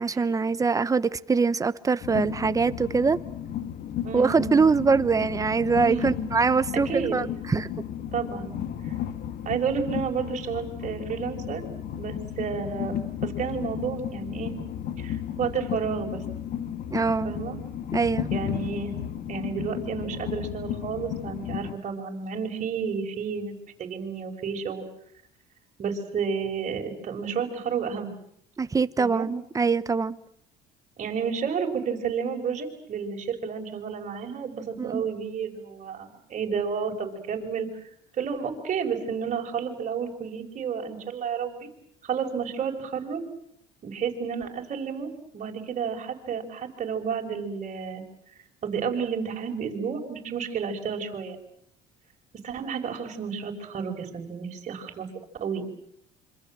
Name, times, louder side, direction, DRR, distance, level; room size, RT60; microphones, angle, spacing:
voice 1, 0.0-3.2 4.1-7.7 16.9-17.4 17.9-18.3 28.6-30.2 34.8-35.0, right 4 dB, 20° right, 1.0 m, -23 dB
Train, 2.0-21.7, left 10 dB, 60° left, 2.1 m, -34 dB
voice 2, 4.0-4.7 5.9-6.2 6.9-7.2 8.1-8.5 8.8-8.9 9.4-11.6 11.9-14.5 15.0-16.2 17.2-17.6 18.3-19.0 19.3-24.8 25.8-28.1 29.0-29.3 31.0-37.9 38.2-41.7 42.0-43.3 43.8-48.0 48.6-51.4 52.4-55.1 55.4-55.6, right 6 dB, 40° right, 5.6 m, -31 dB
26.5 x 25.5 x 7.6 m
cardioid pair, 120°, 18 cm